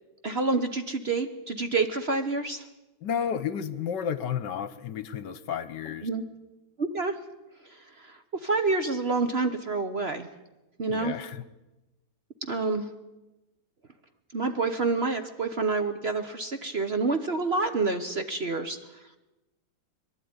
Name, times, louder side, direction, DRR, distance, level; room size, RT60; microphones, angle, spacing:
voice 1, 0.2-2.7 6.0-6.2 6.8-7.2 7.6-10.3 10.8-11.1 12.4-12.9 14.3-18.8, right 3 dB, 40° right, 8 dB, 1.0 m, -28 dB
voice 2, 3.0-6.1 10.9-11.4, left 8 dB, 70° left, 15 dB, 1.5 m, -32 dB
22.5 x 12.0 x 9.6 m, 1.0 s
omnidirectional pair, 2.0 m